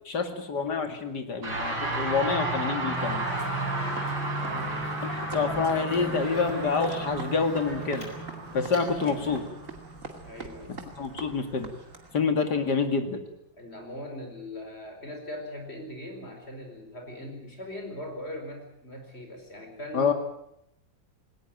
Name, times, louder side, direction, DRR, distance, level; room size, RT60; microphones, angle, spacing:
voice 1, 0.1-3.2 5.0-8.1 8.5-9.4 11.0-11.7 12.1-13.2 19.9-20.1, left 5 dB, 55° left, 7 dB, 2.8 m, -27 dB
sound 1, 1.4-10.9, right 2 dB, 75° right, 5.6 m, -33 dB
Speech, 2.9-9.4, left 1 dB, 80° left, 5.9 m, -42 dB
sound 2, 2.9-12.2, right 3 dB, 40° right, 2.8 m, -45 dB
voice 2, 4.4-4.8 10.2-10.8 13.6-20.1, equal, 30° left, 4 dB, 5.1 m, -40 dB
20.0 x 19.0 x 9.0 m, 0.78 s
omnidirectional pair, 2.1 m